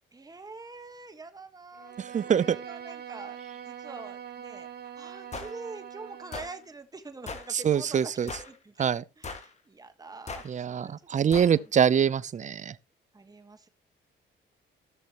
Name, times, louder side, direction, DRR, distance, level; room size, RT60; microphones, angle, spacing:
voice 1, 0.1-2.0 2.2-3.4 3.7-4.7 4.9-10.9 11.3-11.6 13.1-13.7, right 3 dB, 20° right, 1.4 m, -45 dB
Bowed string instrument, 1.7-6.7, right 9 dB, 55° right, 1.2 m, -43 dB
voice 2, 2.0-2.6 7.5-8.3 8.8-9.0 10.4-12.7, right 8 dB, 40° right, 0.6 m, -24 dB
sound 1, 5.3-5.5 6.3-6.5 7.3-7.5 8.3-8.6 9.2-9.5 10.3-10.5 11.3-11.5, left 4 dB, 35° left, 1.8 m, -38 dB
15.5 x 6.6 x 3.0 m
cardioid pair, 90°, 20 cm